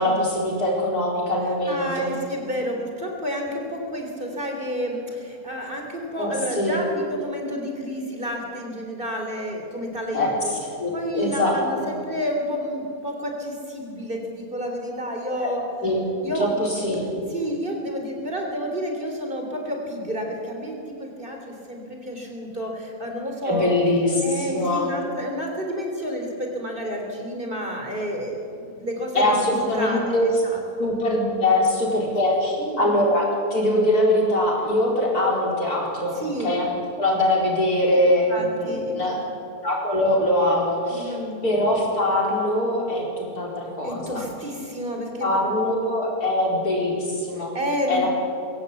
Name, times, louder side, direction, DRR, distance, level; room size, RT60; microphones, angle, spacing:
voice 1, 0.0-2.1 6.2-6.8 10.1-11.9 15.3-15.5 15.8-16.0 16.3-17.1 23.4-24.9 29.1-30.3 30.8-36.2 36.4-36.7 37.0-39.1 39.6-41.2 41.4-44.3 45.2-47.6 47.9-48.2, left 1 dB, 75° left, -2 dB, 5.0 m, -22 dB
voice 2, 1.7-10.5 10.9-15.6 16.2-16.6 17.3-23.7 24.2-29.4 29.7-30.9 32.6-33.0 36.2-36.6 38.3-39.3 40.9-41.4 43.8-45.4 47.3-48.2, equal, 35° right, 2 dB, 3.6 m, -30 dB
22.5 x 16.5 x 8.4 m, 2.7 s
omnidirectional pair, 1.6 m